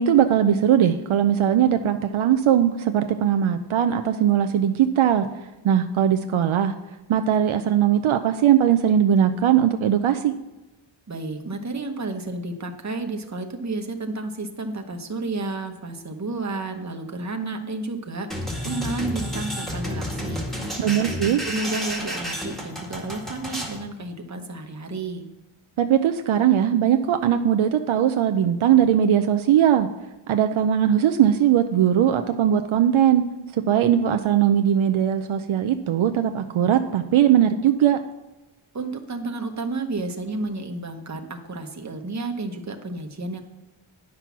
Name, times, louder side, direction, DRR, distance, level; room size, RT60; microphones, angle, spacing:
voice 1, 0.0-5.3 5.6-6.7 7.1-10.3 20.8-21.4 25.8-29.9 30.3-33.2 33.5-38.0, right 9 dB, 75° right, 7 dB, 0.6 m, -20 dB
voice 2, 11.1-20.4 20.8-21.0 21.2-25.2 38.7-43.4, right 2 dB, 35° right, 4 dB, 1.1 m, -31 dB
sound 1, 18.3-23.8, equal, ahead, 2.1 m, -31 dB
9.7 x 6.0 x 5.9 m, 1.0 s
wide cardioid pair, 100°, 48 cm